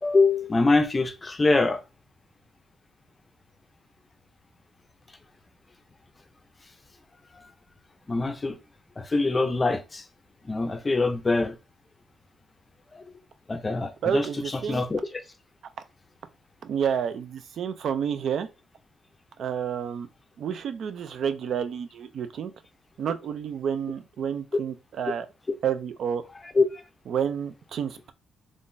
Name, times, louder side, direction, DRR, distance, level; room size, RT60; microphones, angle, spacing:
voice 1, 0.0-1.8 7.3-7.4 8.1-8.6 9.0-10.0 10.4-11.6 12.9-13.0 13.5-15.2 26.6-26.8, left 3 dB, 25° left, 0.5 m, -24 dB
voice 2, 14.0-14.8 16.6-18.5 19.4-20.1 20.4-22.5 23.0-25.3 25.6-26.2 27.1-28.1, right 8 dB, 65° right, 0.4 m, -29 dB
3.6 x 2.4 x 2.6 m
cardioid pair, 90°, 0 cm